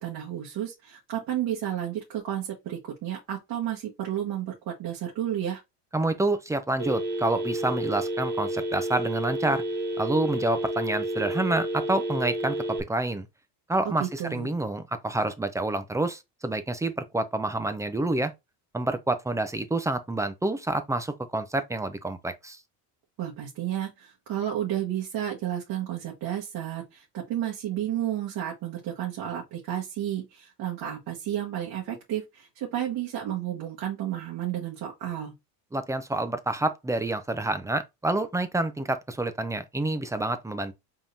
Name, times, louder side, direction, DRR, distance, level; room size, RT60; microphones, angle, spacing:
voice 1, 0.0-5.6 13.8-14.5 23.2-35.3, right 11 dB, 55° right, 1.5 m, -32 dB
voice 2, 5.9-9.6 10.0-13.3 13.7-18.3 18.7-22.6 35.7-40.7, right 2 dB, 5° right, 0.5 m, -28 dB
Telephone, 6.8-12.8, right 1 dB, 25° right, 1.0 m, -30 dB
4.9 x 3.7 x 2.7 m
cardioid pair, 115°, 43 cm